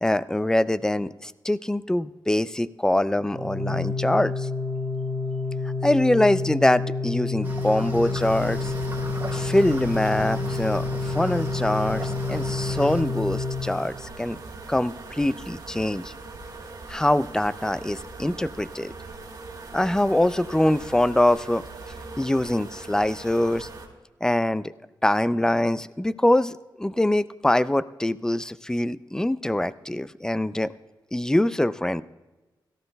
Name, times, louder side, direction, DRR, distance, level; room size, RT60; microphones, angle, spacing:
voice 1, 0.0-4.5 5.8-8.7 9.3-14.4 14.7-16.1 16.9-18.9 19.7-21.6 22.2-23.7 24.2-24.7 25.0-30.7 31.1-32.0, left 1 dB, 10° left, 16 dB, 0.4 m, -24 dB
Organ, 3.3-14.2, left 3 dB, 25° left, 1.3 m, -29 dB
sound 1, 7.4-13.0, right 2 dB, 25° right, 2.9 m, -37 dB
sound 2, 8.2-23.9, right 3 dB, 60° right, 2.3 m, -41 dB
17.5 x 14.0 x 2.3 m, 1.1 s
cardioid pair, 70°, 8 cm